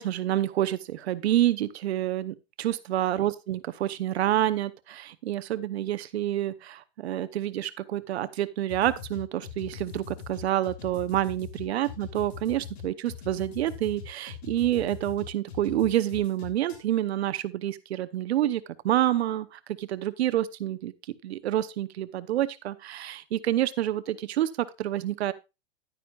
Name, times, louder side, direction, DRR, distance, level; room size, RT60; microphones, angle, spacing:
voice 1, 0.0-20.9 21.2-25.3, right 12 dB, 80° right, 14 dB, 0.9 m, -28 dB
sound 1, 8.7-16.8, left 8 dB, 75° left, 3.3 m, -41 dB
11.0 x 9.3 x 2.4 m, 0.26 s
supercardioid pair, 165°, 32 cm